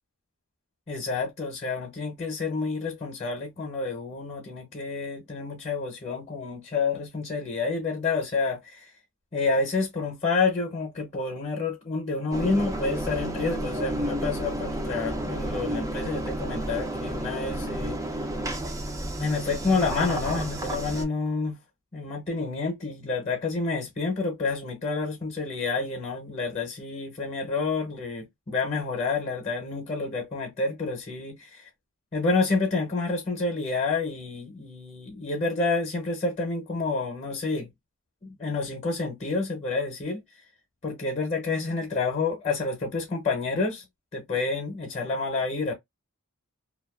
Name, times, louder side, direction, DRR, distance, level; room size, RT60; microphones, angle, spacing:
voice 1, 0.9-8.9 9.3-18.0 19.2-21.6 21.9-31.7 32.1-37.7 38.2-40.2 40.8-43.8 44.1-45.7, left 3 dB, 30° left, 0.7 m, -29 dB
Engine, 12.3-21.1, right 1 dB, 15° right, 0.4 m, -31 dB
2.4 x 2.2 x 2.3 m
head